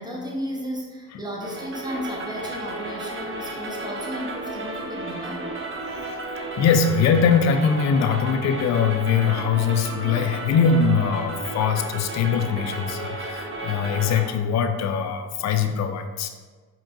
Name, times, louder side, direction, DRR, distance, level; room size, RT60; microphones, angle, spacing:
voice 1, 0.0-5.5, equal, 10° right, -2 dB, 1.1 m, -33 dB
sound 1, 1.4-14.2, right 2 dB, 30° right, 0.9 m, -33 dB
voice 2, 6.6-16.3, left 6 dB, 45° left, 7 dB, 0.5 m, -22 dB
5.1 x 2.8 x 2.6 m, 1.4 s
hypercardioid pair, 50°, 41 cm